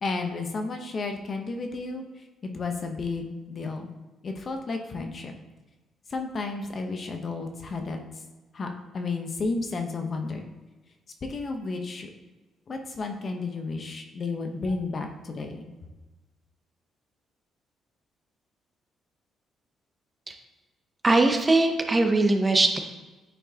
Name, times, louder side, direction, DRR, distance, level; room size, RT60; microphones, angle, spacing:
voice 1, 0.0-2.0 2.4-3.9 4.2-5.3 6.1-8.0 8.5-10.4 11.2-12.1 12.7-15.7, left 3 dB, 45° left, 4 dB, 0.9 m, -32 dB
voice 2, 21.0-22.8, right 2 dB, 20° right, 5 dB, 0.8 m, -21 dB
9.0 x 4.4 x 2.9 m, 1.2 s
cardioid pair, 90°, 0 cm